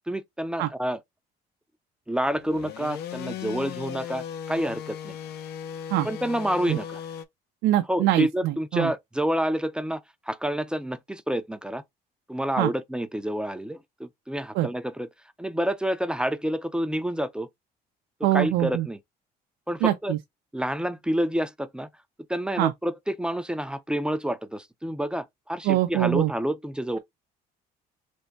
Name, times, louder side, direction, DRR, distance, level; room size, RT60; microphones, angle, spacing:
voice 1, 0.1-1.0 2.1-5.2 6.0-7.0 7.9-11.8 12.3-15.1 15.4-17.5 18.3-19.0 19.7-20.1 20.5-21.9 22.3-27.0, equal, 5° right, 0.4 m, -28 dB
sound 1, 2.3-7.2, left 9 dB, 75° left, 0.6 m, -37 dB
voice 2, 7.6-8.9 12.6-12.7 14.5-14.7 18.2-18.9 19.8-20.2 22.6-22.7 25.6-26.3, right 14 dB, 90° right, 0.5 m, -23 dB
3.5 x 2.1 x 4.0 m
cardioid pair, 110°, 17 cm